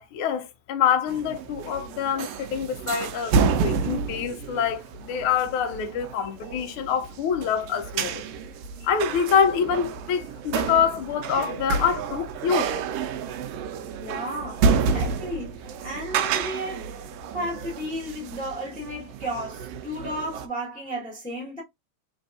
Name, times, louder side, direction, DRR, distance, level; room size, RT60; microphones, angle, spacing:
voice 1, 0.0-8.2 8.8-12.7, left 7 dB, 85° left, 1.2 m, -25 dB
sound 1, 1.1-20.5, right 5 dB, 85° right, 1.3 m, -30 dB
voice 2, 14.0-21.6, equal, 5° left, 0.8 m, -34 dB
3.9 x 3.4 x 2.7 m
omnidirectional pair, 3.4 m